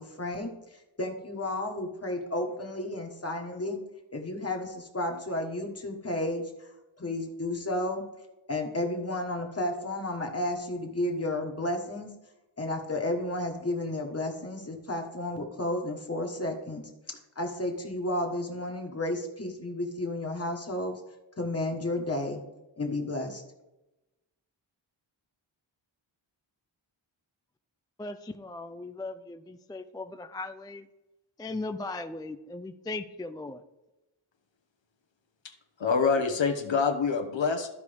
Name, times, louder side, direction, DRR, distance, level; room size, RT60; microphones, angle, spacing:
voice 1, 0.0-3.8 4.1-6.7 7.0-8.0 8.5-12.1 12.6-16.8 17.4-21.0 21.4-22.4 22.8-23.4, left 1 dB, 30° left, 3 dB, 1.4 m, -32 dB
voice 2, 28.0-30.8 31.4-33.6, left 2 dB, 10° left, 8 dB, 0.3 m, -38 dB
voice 3, 35.8-37.8, left 5 dB, 70° left, 6 dB, 1.1 m, -26 dB
13.5 x 4.9 x 3.5 m, 0.99 s
wide cardioid pair, 95°, 46 cm